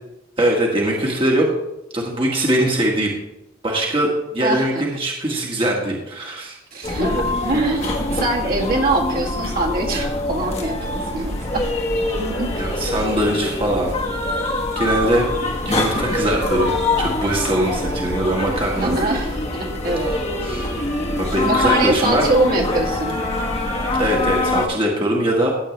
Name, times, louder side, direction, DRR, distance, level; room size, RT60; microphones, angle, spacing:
voice 1, 0.4-1.5 1.9-3.1 3.6-6.6 12.6-14.0 14.7-15.3 15.6-19.0 20.1-20.7 21.2-22.3 24.0-25.5, right 1 dB, 25° right, -2 dB, 1.6 m, -21 dB
voice 2, 4.4-4.8 6.7-11.7 12.2-12.9 18.7-20.1 21.4-23.2, right 2 dB, 45° right, -1 dB, 1.8 m, -23 dB
sound 1, 6.8-24.7, left 2 dB, 30° left, 1.4 m, -24 dB
15.0 x 8.5 x 3.3 m, 0.93 s
head